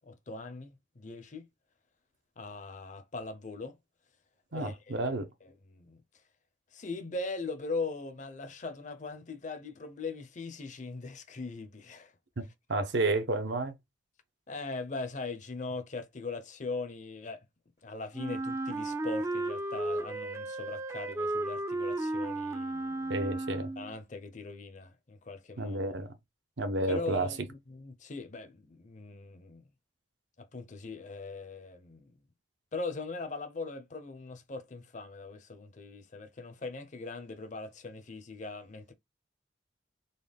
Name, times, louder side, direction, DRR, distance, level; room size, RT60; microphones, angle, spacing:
voice 1, 0.1-1.5 2.4-3.8 4.5-5.1 5.4-6.0 6.7-12.1 14.5-17.4 17.8-23.3 23.8-25.8 26.9-29.6 30.5-32.2 32.7-38.9, left 3 dB, 40° left, 0.6 m, -40 dB
voice 2, 4.5-5.3 12.4-12.5 12.7-13.7 23.1-23.7 25.6-26.1 26.6-27.3, right 2 dB, 65° right, 0.8 m, -31 dB
Wind instrument woodwind instrument, 18.1-23.9, right 2 dB, 15° right, 0.3 m, -34 dB
3.9 x 2.2 x 3.4 m
head